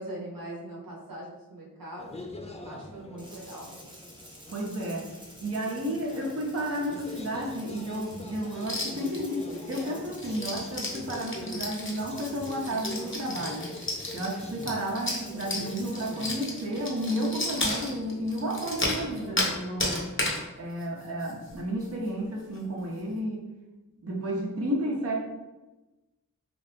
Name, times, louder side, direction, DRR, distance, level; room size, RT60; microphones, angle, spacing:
voice 1, 0.0-2.1 2.6-3.7, right 1 dB, 80° right, -4 dB, 0.9 m, -41 dB
sound 1, 2.0-19.6, left 1 dB, 20° left, 0.4 m, -44 dB
Rattle (instrument), 3.2-17.7, equal, 15° right, 0.7 m, -51 dB
voice 2, 4.5-5.1 5.4-13.7 14.1-20.0 20.6-23.5 24.0-25.2, equal, 45° right, -2 dB, 0.7 m, -32 dB
sound 2, 8.6-9.2 9.5-19.5 19.8-20.4 20.8-20.9 21.2-21.5 21.8-21.9 22.4-22.6, left 2 dB, 35° left, 0.8 m, -33 dB
2.7 x 2.5 x 3.4 m, 1.1 s
wide cardioid pair, 45°, 34 cm